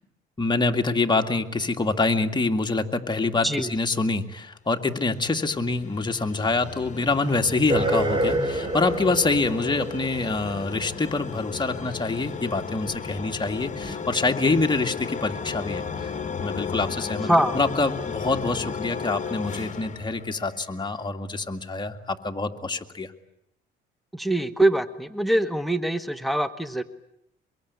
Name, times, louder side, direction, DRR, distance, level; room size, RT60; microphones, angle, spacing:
voice 1, 0.4-16.1 16.4-17.3 17.5-23.1, left 3 dB, 20° left, 5 dB, 2.1 m, -26 dB
sound 1, 4.8-20.9, left 6 dB, 40° left, 1.8 m, -35 dB
sound 2, 7.7-11.8 12.9-13.0 13.8-13.9, right 1 dB, 25° right, 2.8 m, -28 dB
voice 2, 17.3-17.6 24.1-26.8, right 1 dB, ahead, 11 dB, 1.3 m, -23 dB
24.0 x 23.0 x 9.5 m, 0.82 s
cardioid pair, 90°, 20 cm